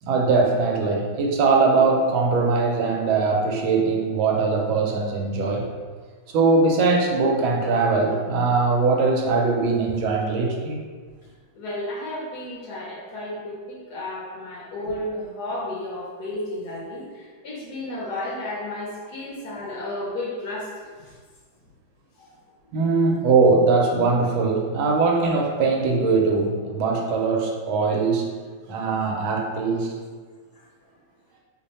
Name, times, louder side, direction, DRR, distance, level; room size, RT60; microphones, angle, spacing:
voice 1, 0.0-5.7 6.3-10.8 22.7-28.3 28.7-29.9, right 4 dB, 85° right, 0 dB, 1.4 m, -21 dB
voice 2, 11.5-21.2 22.2-22.3 30.5-30.6, left 1 dB, 65° left, -5 dB, 1.0 m, -33 dB
3.2 x 2.1 x 4.0 m, 1.5 s
omnidirectional pair, 2.1 m